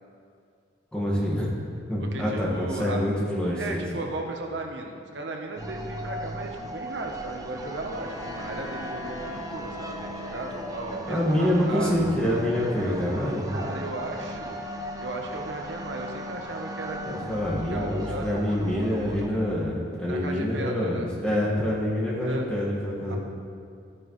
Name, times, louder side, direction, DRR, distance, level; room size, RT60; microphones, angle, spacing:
voice 1, 0.9-1.5 1.9-3.8 11.1-13.5 17.1-23.2, left 1 dB, 5° left, -5 dB, 1.6 m, -26 dB
voice 2, 2.0-3.1 3.5-12.1 13.5-14.6 15.0-17.4 17.7-18.4 20.0-21.1 22.2-22.5 23.1-23.2, right 2 dB, 70° right, 2 dB, 0.9 m, -36 dB
sound 1, 5.6-19.3, right 1 dB, 20° right, 0.6 m, -37 dB
Wind instrument woodwind instrument, 7.9-11.3, left 2 dB, 35° left, 2.1 m, -41 dB
12.5 x 9.4 x 3.1 m, 2.4 s
head